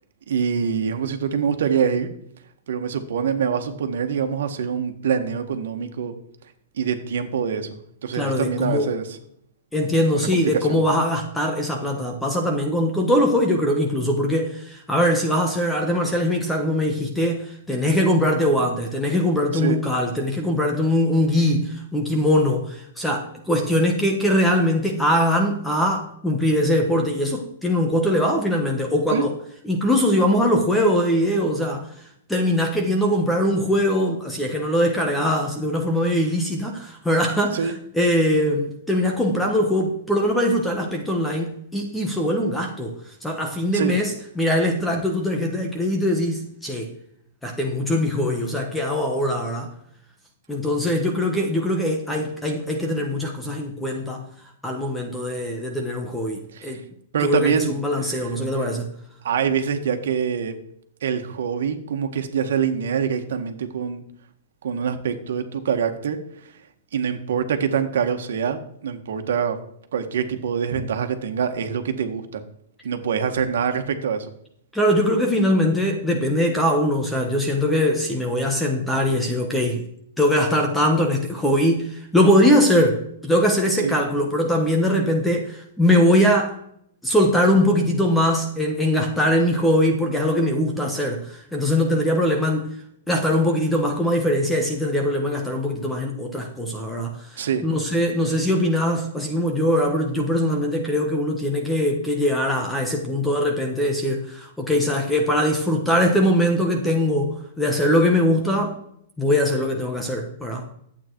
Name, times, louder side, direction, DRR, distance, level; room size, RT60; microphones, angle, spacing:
voice 1, 0.3-2.1 2.7-6.1 6.8-9.2 10.1-10.8 19.6-19.8 29.1-29.3 37.5-37.7 43.7-43.9 56.5-56.8 57.1-58.3 59.2-60.5 61.0-64.0 64.6-66.2 66.9-69.6 69.9-72.4 72.8-74.3 83.8-83.9 97.4-97.6, right 7 dB, 70° right, 6 dB, 1.6 m, -25 dB
voice 2, 8.1-8.9 9.7-29.3 29.6-31.9 32.3-46.9 47.4-49.7 50.5-54.2 54.6-56.8 57.2-58.9 74.7-79.8 80.2-86.6 87.0-92.7 93.1-108.8 109.2-110.7, left 1 dB, 5° left, 2 dB, 1.1 m, -21 dB
12.0 x 8.5 x 4.6 m, 0.70 s
hypercardioid pair, 170°, 0 cm